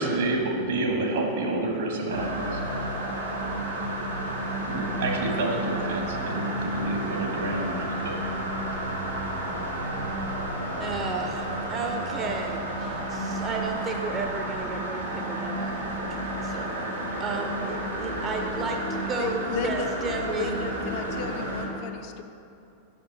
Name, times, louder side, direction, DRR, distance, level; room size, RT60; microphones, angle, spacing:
voice 1, 0.0-2.6 4.7-8.2, right 2 dB, 60° right, 1 dB, 1.3 m, -29 dB
sound 1, 2.1-21.6, right 1 dB, 80° right, 1.6 m, -31 dB
voice 2, 10.8-16.9 17.2-20.7, right 3 dB, 25° right, 3 dB, 0.5 m, -33 dB
voice 3, 19.2-20.0 20.3-22.2, left 6 dB, 45° left, 7 dB, 0.5 m, -34 dB
5.7 x 5.1 x 6.7 m, 2.7 s
figure-of-eight pair, 90°, 0 cm